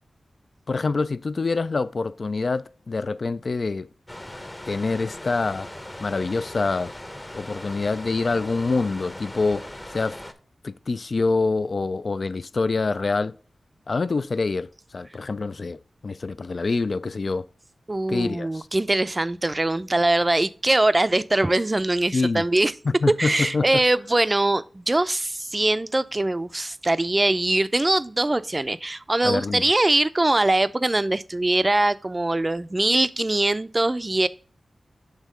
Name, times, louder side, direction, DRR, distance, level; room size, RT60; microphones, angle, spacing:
voice 1, 0.7-3.9 4.7-5.7 6.0-6.9 7.3-9.6 9.9-10.2 10.6-13.3 13.9-17.4 18.1-18.7 22.1-22.4 22.8-23.8 29.2-29.7, left 3 dB, 60° left, 0.3 m, -26 dB
sound 1, 4.1-10.3, left 1 dB, 20° left, 0.8 m, -39 dB
voice 2, 17.9-22.7 23.2-34.3, right 2 dB, 30° right, 0.4 m, -22 dB
6.4 x 3.6 x 5.0 m
cardioid pair, 50°, 0 cm